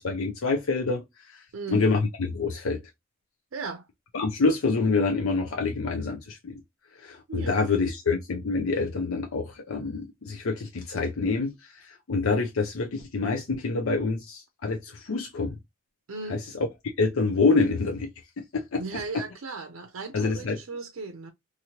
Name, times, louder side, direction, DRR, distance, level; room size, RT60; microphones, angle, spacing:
voice 1, 0.0-2.8 4.1-6.6 6.9-15.6 16.3-16.4 17.0-18.1 18.4-18.8 20.1-20.6, left 4 dB, 75° left, 0.5 m, -27 dB
voice 2, 1.5-1.9 3.5-3.8 7.3-7.6 16.1-16.4 18.8-21.3, right 3 dB, 70° right, 0.5 m, -36 dB
2.8 x 2.6 x 2.8 m
head